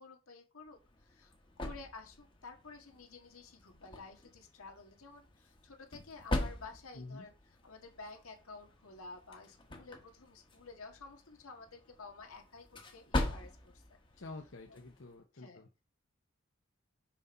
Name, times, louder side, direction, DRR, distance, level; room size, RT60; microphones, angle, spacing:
voice 1, 0.0-13.8 14.7-14.8 15.3-15.6, left 3 dB, 85° left, 3 dB, 1.8 m, -52 dB
sound 1, 0.7-15.2, left 1 dB, 20° left, 1.1 m, -43 dB
voice 2, 14.2-15.7, left 2 dB, 65° left, 2 dB, 0.9 m, -48 dB
6.2 x 5.4 x 4.3 m, 0.29 s
head